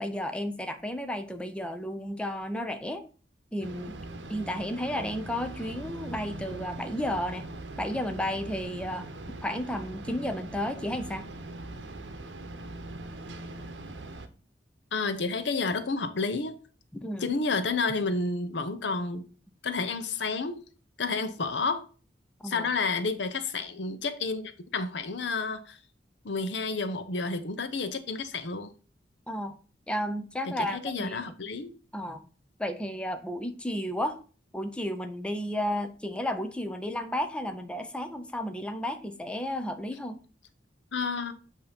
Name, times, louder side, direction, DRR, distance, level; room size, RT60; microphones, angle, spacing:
voice 1, 0.0-3.1 3.5-4.0 4.3-7.4 7.8-9.1 9.4-11.3 17.0-17.3 22.4-22.7 29.3-29.5 29.9-31.2 31.9-32.2 32.6-34.2 34.5-40.2, left 1 dB, 5° left, 0.5 m, -32 dB
sound 1, 3.6-14.3, right 2 dB, 80° right, 0.8 m, -41 dB
voice 2, 14.9-16.5 17.2-19.2 19.6-20.6 21.0-21.8 22.4-25.8 26.2-28.7 30.5-31.7 40.9-41.3, left 4 dB, 75° left, 0.7 m, -30 dB
8.0 x 2.8 x 5.0 m
head